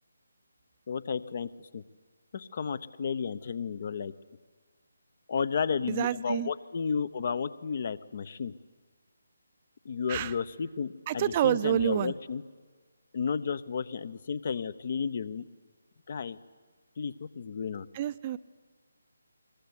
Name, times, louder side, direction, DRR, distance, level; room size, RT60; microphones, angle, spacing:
voice 1, 0.9-1.8 2.3-4.1 5.3-8.5 9.8-12.4 13.1-15.4 16.1-16.4 17.0-17.9, left 6 dB, 45° left, 17 dB, 1.0 m, -32 dB
voice 2, 5.9-6.5 10.1-10.3 11.1-12.1 17.9-18.4, right 12 dB, 30° right, 14 dB, 0.7 m, -28 dB
22.0 x 21.0 x 9.8 m, 1.5 s
figure-of-eight pair, 150°, 0 cm